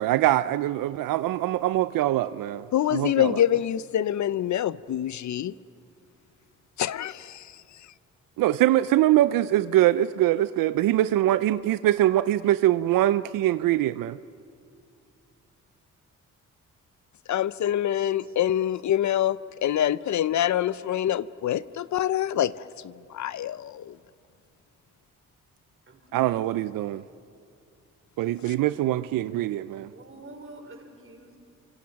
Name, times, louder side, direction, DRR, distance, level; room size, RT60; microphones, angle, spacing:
voice 1, 0.0-3.4 8.4-14.2 26.1-27.0 28.2-29.9, right 14 dB, 85° right, 15 dB, 0.5 m, -23 dB
voice 2, 2.7-5.5 6.8-7.5 17.3-22.5 22.8-24.0, left 11 dB, 60° left, 18 dB, 0.6 m, -25 dB
voice 3, 25.9-26.3 29.8-31.4, right 2 dB, 40° right, 3 dB, 4.8 m, -47 dB
28.5 x 25.5 x 5.9 m, 2.4 s
cardioid pair, 80°, 32 cm